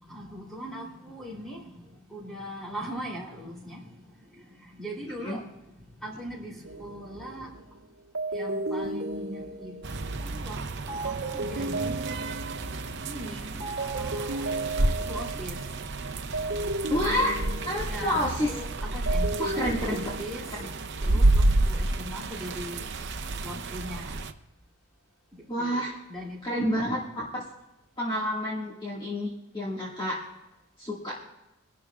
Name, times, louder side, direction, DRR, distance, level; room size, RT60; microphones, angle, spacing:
voice 1, 0.0-7.9 8.3-9.8 10.1-12.3 13.0-14.5 15.1-15.8 17.9-20.7 21.0-22.9 23.4-24.2 25.3-26.6, equal, ahead, 3.0 m, -40 dB
voice 2, 5.1-5.4 16.9-17.3 17.7-18.5 19.4-19.8 21.0-21.2 25.5-25.9 26.4-27.4 28.0-30.2 30.8-31.3, equal, 20° left, 1.8 m, -29 dB
sound 1, 6.6-7.6 8.1-13.3 13.6-18.6 18.9-21.0, right 2 dB, 65° right, 1.3 m, -35 dB
sound 2, 9.8-24.3, right 2 dB, 50° right, 0.7 m, -30 dB
24.0 x 11.5 x 2.4 m
head